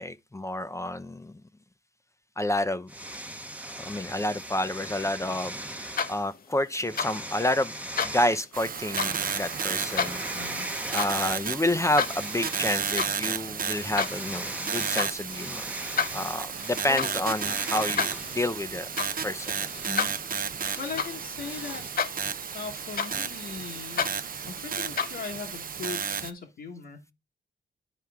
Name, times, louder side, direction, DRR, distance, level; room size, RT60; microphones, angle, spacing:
voice 1, 0.0-1.3 2.4-2.9 3.8-7.7 8.0-10.2 10.9-15.7 16.1-18.9 19.2-19.6, left 1 dB, 15° left, 0.6 m, -29 dB
sound 1, 2.9-6.3 6.8-8.5 8.9-11.5 11.8-21.9, right 1 dB, 5° right, 0.9 m, -40 dB
sound 2, 5.7-6.4 6.7-7.1 7.7-8.2 8.7-9.1 9.7-10.2 10.7-11.1 11.5-12.2 12.6-13.2 13.5-14.2 14.7-15.1 15.7-21.5 21.7-22.4 22.7-25.1, left 6 dB, 50° left, 0.8 m, -32 dB
sound 3, 8.5-26.3, right 7 dB, 50° right, 0.6 m, -33 dB
voice 2, 10.3-10.7 16.9-17.1 17.4-17.6 19.8-20.1 20.8-21.9 22.5-24.1 24.5-27.0, left 5 dB, 75° left, 1.4 m, -39 dB
11.0 x 4.6 x 3.5 m
cardioid pair, 75°, 19 cm